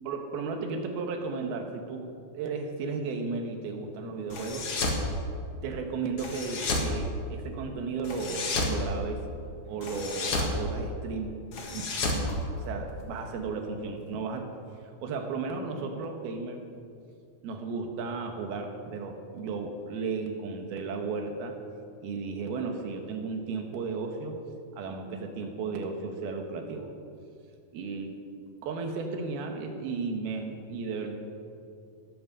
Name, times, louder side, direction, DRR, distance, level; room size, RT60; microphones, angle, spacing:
voice 1, 0.1-2.1 2.3-4.7 5.6-9.2 9.6-11.3 11.7-14.5 15.0-16.7 17.4-21.6 22.0-24.4 24.7-26.9 27.7-28.2 28.6-31.2, right 4 dB, 90° right, 4 dB, 3.2 m, -34 dB
sound 1, 4.3-5.0 6.2-6.9 8.0-8.8 9.8-10.5 11.5-13.0, left 2 dB, 45° left, 2.2 m, -31 dB
17.0 x 8.8 x 6.7 m, 2.5 s
omnidirectional pair, 4.3 m